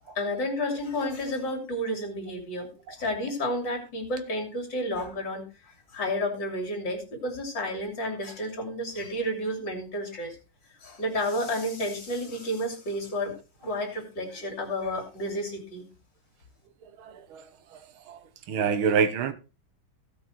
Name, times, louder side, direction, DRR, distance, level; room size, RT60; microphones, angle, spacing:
voice 1, 0.1-10.4 10.8-13.4 13.6-15.9, left 1 dB, 60° left, 3.6 m, -31 dB
voice 2, 18.5-19.3, right 6 dB, 85° right, 1.9 m, -24 dB
16.5 x 5.5 x 4.4 m
omnidirectional pair, 2.2 m